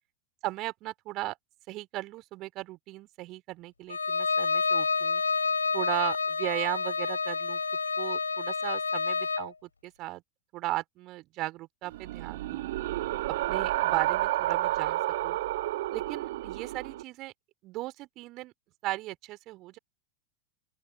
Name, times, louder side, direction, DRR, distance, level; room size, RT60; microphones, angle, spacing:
voice 1, 0.4-1.4 1.7-5.2 5.7-7.6 8.0-10.2 10.5-12.7 13.5-15.4 15.9-17.3 17.6-18.5 18.8-19.8, right 18 dB, 40° right, 4.3 m, -36 dB
Bowed string instrument, 3.9-9.5, left 4 dB, 75° left, 6.3 m, -29 dB
sound 1, 11.9-17.0, right 16 dB, 55° right, 1.4 m, -30 dB
open air
figure-of-eight pair, 90°, 0 cm